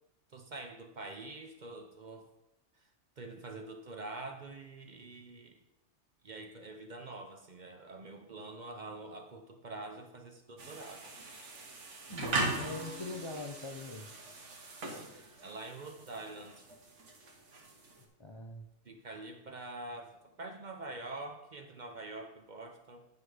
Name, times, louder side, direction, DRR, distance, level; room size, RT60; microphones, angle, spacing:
voice 1, 0.3-2.3 2.8-2.9 3.2-5.6 6.2-11.1 15.1-16.7 18.8-23.1, right 2 dB, 45° right, 4 dB, 0.7 m, -45 dB
sound 1, 10.6-18.0, right 3 dB, 80° right, 1.4 m, -40 dB
voice 2, 12.1-14.1 18.2-18.6, left 2 dB, 35° left, 2 dB, 0.5 m, -42 dB
9.6 x 4.7 x 4.9 m, 0.92 s
omnidirectional pair, 1.2 m